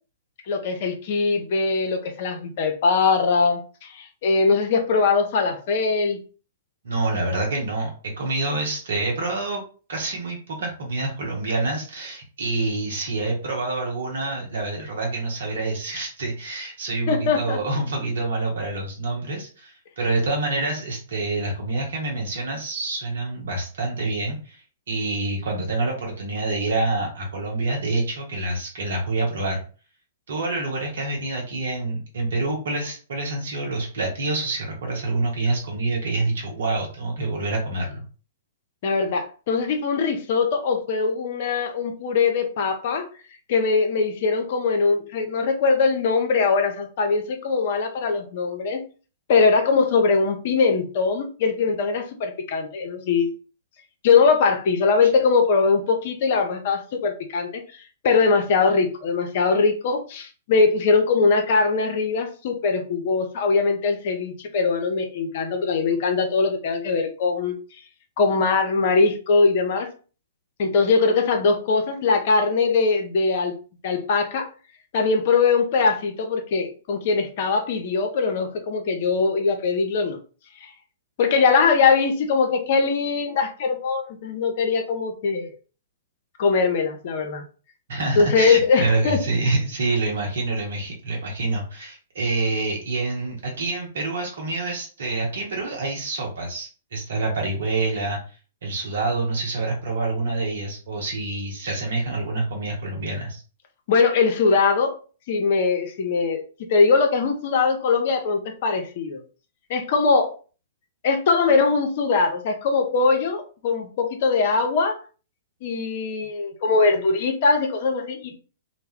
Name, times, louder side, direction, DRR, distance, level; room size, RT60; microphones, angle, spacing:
voice 1, 0.5-6.2 17.1-17.6 38.8-43.1 43.5-48.8 49.3-53.3 54.0-57.6 58.0-67.6 68.2-69.9 70.6-73.6 73.8-74.5 74.9-80.2 80.6-80.7 81.2-85.5 86.4-87.4 88.1-89.2 103.9-105.0 105.3-109.2 109.7-110.3 111.0-115.0 115.6-118.4, left 4 dB, 50° left, 5 dB, 0.6 m, -21 dB
voice 2, 6.8-9.6 9.9-24.6 24.9-29.6 30.3-38.0 87.9-98.2 98.6-103.4, right 2 dB, 65° right, 0 dB, 0.7 m, -27 dB
2.2 x 2.0 x 3.4 m, 0.37 s
figure-of-eight pair, 110°, 0 cm